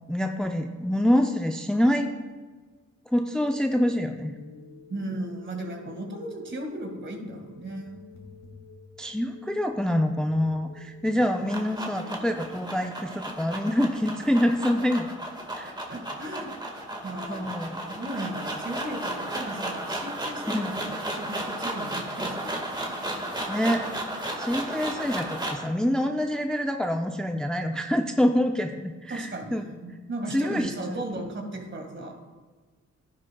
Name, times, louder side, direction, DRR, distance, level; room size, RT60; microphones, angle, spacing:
voice 1, 0.1-2.1 3.1-4.4 9.0-15.1 15.5-15.7 17.3-17.8 20.5-20.7 23.5-23.8 24.4-29.6 30.3-31.0, equal, 5° left, 5 dB, 0.5 m, -26 dB
sound 1, 3.4-13.4, left 4 dB, 65° left, 2.3 m, -51 dB
voice 2, 4.9-8.0 11.1-11.2 15.9-16.5 17.0-17.6 17.9-22.9 29.1-32.1, right 1 dB, 40° right, 3 dB, 1.9 m, -36 dB
sound 2, 11.1-25.7, right 1 dB, 15° right, 1.7 m, -34 dB
12.0 x 10.5 x 2.3 m, 1.4 s
cardioid pair, 65°, 29 cm